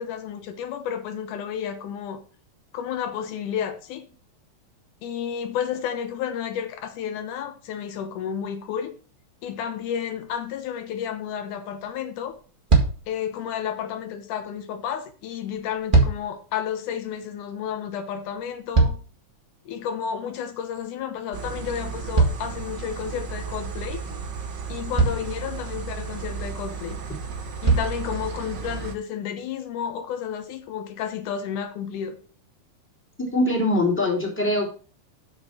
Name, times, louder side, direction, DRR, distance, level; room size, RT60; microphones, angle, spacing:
voice 1, 0.0-2.2 2.7-4.0 5.0-8.9 9.4-12.4 13.1-19.0 19.7-24.0 24.7-27.0 27.6-32.2, left 8 dB, 80° left, 2.5 m, -31 dB
sound 1, 10.3-10.4 11.8-11.9 12.3-12.4 12.7-13.2 15.5-16.4 18.3-19.4 22.1-23.1 24.3-24.4 24.9-25.4 26.8-26.9 27.6-28.1 28.9-29.0, right 3 dB, 25° right, 1.2 m, -22 dB
sound 2, 21.3-28.9, right 6 dB, 75° right, 0.9 m, -34 dB
voice 2, 33.3-34.7, left 1 dB, 5° left, 2.8 m, -22 dB
7.3 x 6.1 x 6.0 m
omnidirectional pair, 3.5 m